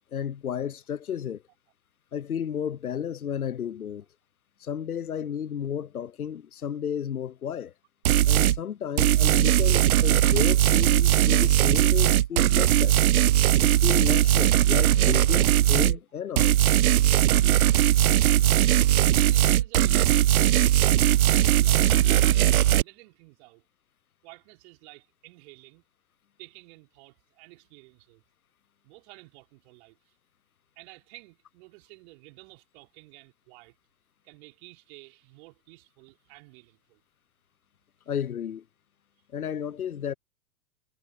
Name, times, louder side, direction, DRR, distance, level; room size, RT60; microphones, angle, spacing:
voice 1, 0.1-1.4 2.1-4.0 4.6-7.7 8.3-13.0 13.6-16.6 38.1-38.6 39.3-40.1, left 8 dB, 80° left, 0.9 m, -32 dB
sound 1, 8.1-8.6 9.0-16.0 16.4-22.8, right 12 dB, 75° right, 0.5 m, -20 dB
voice 2, 18.1-18.6 19.0-20.5 21.1-22.5 22.8-23.6 24.2-25.9 26.4-28.2 28.8-30.1 30.8-33.8 34.2-37.0, right 25 dB, 50° right, 5.4 m, -52 dB
figure-of-eight pair, 95°, 43 cm